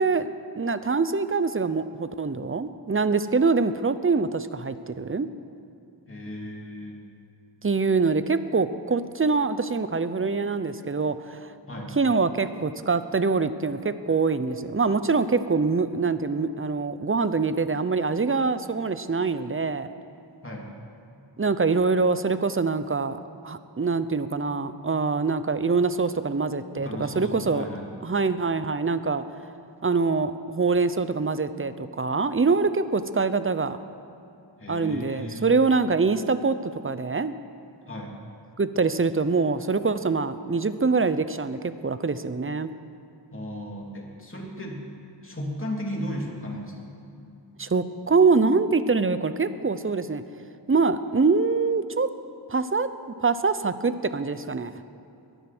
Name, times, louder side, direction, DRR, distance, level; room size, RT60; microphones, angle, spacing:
voice 1, 0.0-5.3 7.6-11.5 12.0-19.9 21.4-23.2 23.4-27.7 28.0-29.2 29.8-33.8 34.7-36.6 36.8-37.3 38.6-42.7 47.6-50.2 50.7-52.1 52.5-52.9 53.2-54.7, right 4 dB, 30° right, 12 dB, 0.7 m, -24 dB
voice 2, 6.1-7.0 11.7-12.0 20.4-20.7 26.7-27.9 34.6-35.6 37.9-38.1 43.3-44.9 45.2-47.0, equal, 30° left, -2 dB, 3.1 m, -35 dB
22.0 x 9.2 x 6.1 m, 2.7 s
wide cardioid pair, 75°, 43 cm